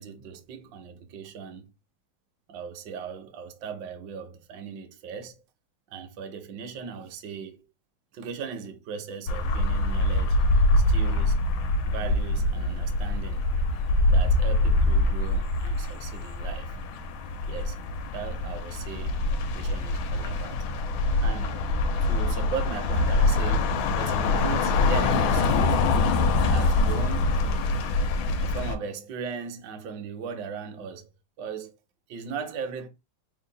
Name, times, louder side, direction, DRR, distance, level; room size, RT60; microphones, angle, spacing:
voice 1, 0.0-1.7 2.5-5.4 5.9-7.7 8.1-10.4 10.9-11.4 11.8-13.4 14.1-16.7 17.5-17.8 18.1-19.2 19.5-20.6 21.2-21.6 22.1-25.9 26.5-27.3 28.4-31.1 31.4-31.7 32.1-32.9, right 6 dB, 65° right, 1.2 m, -38 dB
sound 1, 9.3-28.8, left 2 dB, 75° left, 1.2 m, -24 dB
3.7 x 2.1 x 3.8 m
omnidirectional pair, 2.4 m